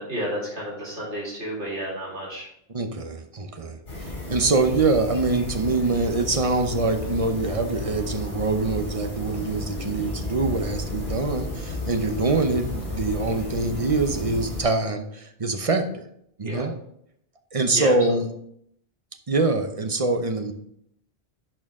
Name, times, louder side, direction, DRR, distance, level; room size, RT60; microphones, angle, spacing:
voice 1, 0.0-2.5 16.4-16.6 17.7-17.9, equal, 90° right, -5 dB, 2.8 m, -31 dB
voice 2, 2.7-16.0 16.4-16.7 17.5-18.3 19.3-20.5, right 3 dB, 35° right, 6 dB, 0.7 m, -24 dB
sound 1, 3.9-14.6, left 2 dB, 65° left, 3.5 m, -33 dB
10.5 x 4.5 x 3.6 m, 0.72 s
omnidirectional pair, 1.1 m